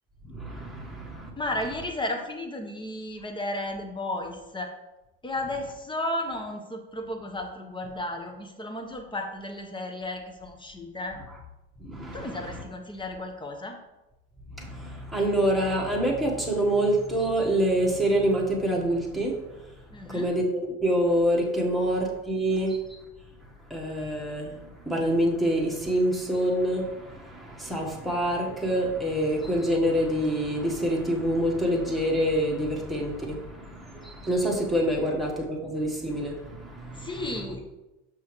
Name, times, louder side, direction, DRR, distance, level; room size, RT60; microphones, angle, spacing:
voice 1, 0.2-1.3 11.8-12.6 14.6-19.3 20.1-23.0 23.7-24.5 24.8-37.2, right 1 dB, ahead, -3 dB, 1.5 m, -26 dB
voice 2, 1.4-4.7 5.2-11.2 12.1-13.8 19.9-20.3 37.0-37.6, left 1 dB, 15° left, 4 dB, 1.1 m, -33 dB
6.4 x 5.4 x 3.2 m, 0.98 s
supercardioid pair, 90°, 30 cm